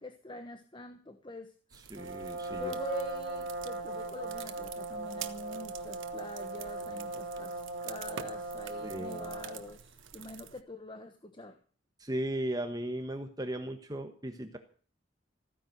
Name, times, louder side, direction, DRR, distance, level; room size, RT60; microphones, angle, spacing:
voice 1, 0.0-1.5 2.2-11.6, equal, 25° left, 7 dB, 1.2 m, -44 dB
sound 1, 1.7-10.6, right 8 dB, 90° right, 1.4 m, -48 dB
voice 2, 1.9-2.7 8.8-9.4 12.0-14.6, right 1 dB, 20° right, 7 dB, 1.3 m, -36 dB
Brass instrument, 1.9-9.7, right 3 dB, 65° right, 3.3 m, -39 dB
15.5 x 10.0 x 7.8 m, 0.43 s
head